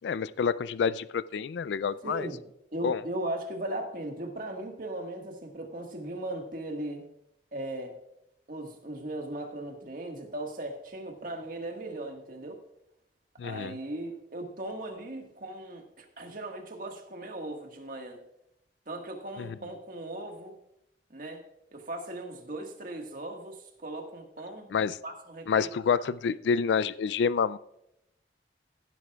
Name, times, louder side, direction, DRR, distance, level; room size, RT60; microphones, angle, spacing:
voice 1, 0.0-2.3 2.8-3.0 13.4-13.7 19.4-19.5 24.7-25.0 25.5-27.6, left 6 dB, 80° left, 18 dB, 0.3 m, -28 dB
voice 2, 2.0-2.4 2.7-7.0 7.5-8.0 8.5-12.6 13.4-18.2 18.9-20.6 21.1-21.4 21.7-24.7 25.0-25.7, right 1 dB, 50° right, 3 dB, 1.7 m, -38 dB
15.5 x 11.0 x 2.4 m, 0.82 s
head